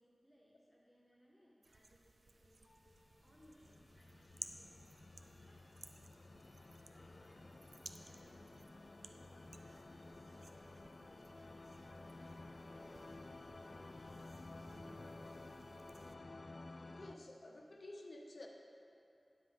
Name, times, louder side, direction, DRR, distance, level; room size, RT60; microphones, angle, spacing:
voice 1, 0.0-2.7 3.2-5.7 6.9-10.4 10.9-14.2, equal, ahead, -5 dB, 1.2 m, -69 dB
sound 1, 1.6-16.2, right 3 dB, 65° right, 0.4 m, -59 dB
sound 2, 2.8-17.2, left 2 dB, 50° left, 0.3 m, -54 dB
voice 2, 16.9-18.5, left 2 dB, 70° left, 1 dB, 0.9 m, -53 dB
10.0 x 7.5 x 3.7 m, 2.7 s
wide cardioid pair, 65°, 0 cm